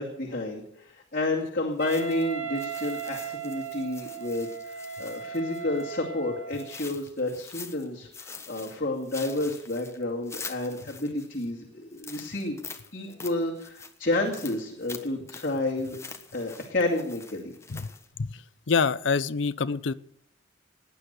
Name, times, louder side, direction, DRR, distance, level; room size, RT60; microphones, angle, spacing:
voice 1, 0.0-12.6 12.9-16.0 16.3-17.5, left 2 dB, 50° left, -2 dB, 2.5 m, -30 dB
sound 1, 1.8-5.9 6.5-7.9 8.1-11.5 11.9-18.1, left 5 dB, 15° left, 1.2 m, -45 dB
Wind instrument woodwind instrument, 1.8-6.8, right 7 dB, 90° right, 1.6 m, -37 dB
voice 2, 18.7-19.9, left 5 dB, 75° left, 15 dB, 0.6 m, -25 dB
18.0 x 9.7 x 6.7 m, 0.68 s
head